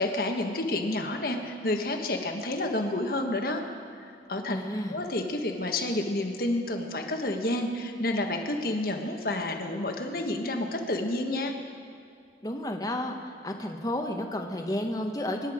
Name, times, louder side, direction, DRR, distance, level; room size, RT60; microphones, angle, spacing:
voice 1, 0.0-3.6 4.3-4.6 4.9-11.5, left 1 dB, 55° left, 4 dB, 1.4 m, -29 dB
voice 2, 4.5-5.0 12.4-13.1 13.4-15.5, left 1 dB, 20° left, 3 dB, 1.1 m, -31 dB
23.5 x 10.5 x 5.0 m, 2.4 s
head